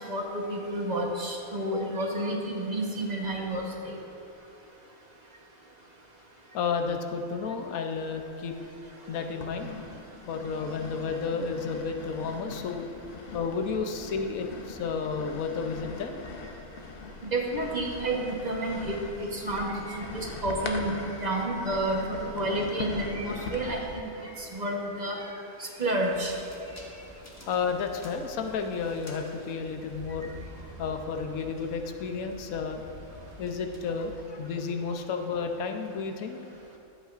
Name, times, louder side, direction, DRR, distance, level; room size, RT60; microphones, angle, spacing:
voice 1, 0.1-4.0 17.2-22.0 22.3-24.1 24.4-25.2 25.6-26.3, right 1 dB, 35° right, -1 dB, 1.1 m, -30 dB
voice 2, 6.5-8.6 9.1-10.0 10.3-12.9 13.3-16.2 24.2-24.3 27.5-30.3 30.8-32.8 33.4-36.4, left 5 dB, 85° left, 5 dB, 1.1 m, -32 dB
sound 1, 8.2-8.8 9.4-24.0, left 4 dB, 50° left, 0.8 m, -41 dB
sound 2, 26.0-34.2, left 1 dB, 15° left, 1.1 m, -48 dB
13.5 x 8.0 x 2.5 m, 2.8 s
omnidirectional pair, 1.4 m